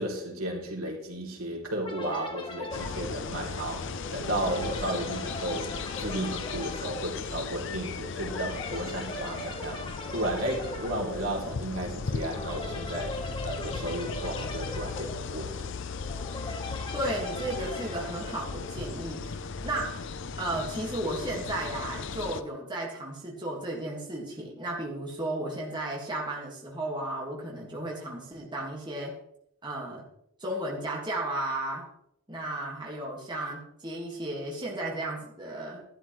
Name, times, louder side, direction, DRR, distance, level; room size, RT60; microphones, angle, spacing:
voice 1, 0.0-9.8 10.1-15.7, right 1 dB, 85° right, -1 dB, 3.2 m, -34 dB
sound 1, 1.8-19.0, left 2 dB, 25° left, 1.3 m, -40 dB
sound 2, 2.7-22.4, left 5 dB, 60° left, 0.6 m, -37 dB
voice 2, 16.9-20.0 20.4-29.2 29.6-30.1 30.4-31.9 32.3-35.9, right 1 dB, 20° right, -2 dB, 2.0 m, -34 dB
13.0 x 12.0 x 3.2 m, 0.75 s
head